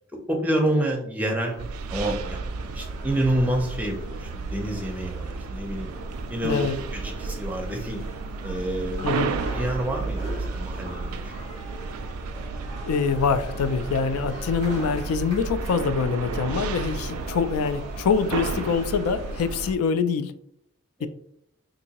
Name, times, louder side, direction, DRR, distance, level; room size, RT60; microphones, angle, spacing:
voice 1, 0.1-1.5 1.9-2.4 2.7-5.9 6.3-6.6 6.9-8.0 8.4-9.2 9.5-11.5 21.0-21.1, right 1 dB, 5° right, 1 dB, 0.5 m, -28 dB
sound 1, 1.4-19.7, right 1 dB, 25° left, 1.3 m, -42 dB
sound 2, 1.6-19.7, right 4 dB, 90° right, 0.3 m, -33 dB
voice 2, 6.4-6.8 9.0-9.3 12.9-20.3 21.0-21.1, left 5 dB, 90° left, 12 dB, 0.3 m, -25 dB
3.7 x 2.6 x 2.8 m, 0.72 s
head